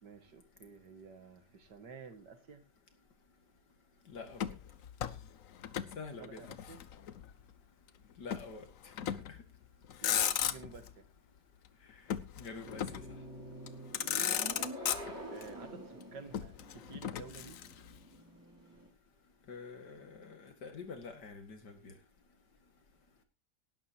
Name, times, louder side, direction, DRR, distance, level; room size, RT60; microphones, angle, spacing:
voice 1, 0.0-2.6 6.2-6.8 10.0-11.1 14.5-15.0 15.3-17.6, right 5 dB, 85° right, 8 dB, 2.4 m, -51 dB
voice 2, 4.1-4.5 6.0-6.4 8.2-8.6 12.4-13.0 19.5-21.9, left 4 dB, 80° left, 7 dB, 2.7 m, -46 dB
Motor vehicle (road), 4.3-6.0 6.2-7.3 8.3-8.5 9.0-9.4 9.8-10.9 12.1-13.2 13.7-13.8 13.9-15.5 16.3-18.0, left 9 dB, 60° left, 1.1 m, -36 dB
sound 1, 12.6-18.9, equal, 10° right, 4.8 m, -47 dB
18.5 x 11.5 x 2.9 m, 0.27 s
omnidirectional pair, 1.8 m